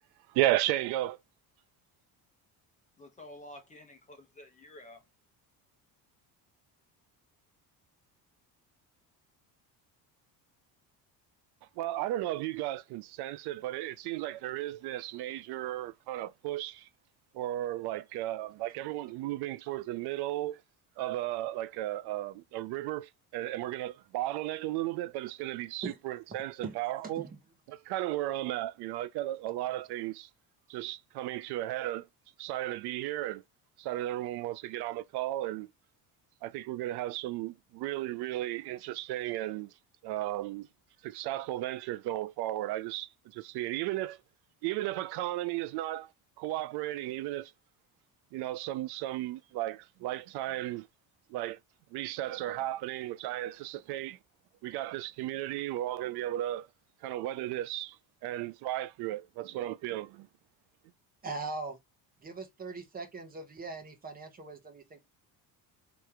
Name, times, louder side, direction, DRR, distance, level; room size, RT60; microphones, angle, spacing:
voice 1, 0.3-1.2 11.8-16.9 17.3-20.6 21.0-27.2 27.7-30.3 30.7-32.0 32.4-33.4 33.8-35.7 36.4-39.7 40.0-40.7 41.0-44.2 44.6-46.1 46.4-47.5 48.3-50.9 51.3-51.6 51.9-54.2 54.6-56.7 57.0-58.0 58.2-60.3, right 15 dB, 75° right, 0.5 m, -34 dB
voice 2, 3.0-5.0, left 1 dB, 20° left, 1.0 m, -50 dB
voice 3, 61.2-61.8 62.2-65.0, right 3 dB, 20° right, 1.1 m, -40 dB
3.3 x 3.1 x 4.8 m
cardioid pair, 165°, 39 cm